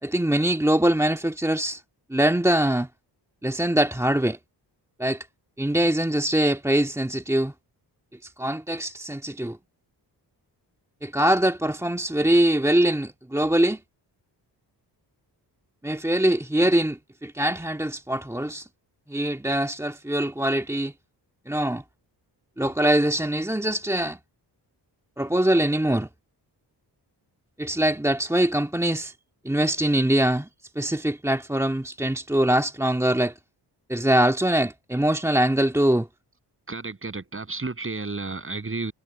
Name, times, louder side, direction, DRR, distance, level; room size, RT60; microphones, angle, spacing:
voice 1, 0.0-1.8 2.1-2.9 3.4-4.4 5.0-5.3 5.6-7.5 8.2-9.6 11.0-13.8 15.8-18.7 19.1-20.9 21.5-21.8 22.6-24.2 25.2-26.1 27.6-29.1 29.4-30.5 30.8-33.3 33.9-36.1, right 1 dB, 5° right, 1.9 m, -23 dB
voice 2, 36.7-38.9, right 3 dB, 30° right, 7.9 m, -32 dB
cardioid pair, 85°, 42 cm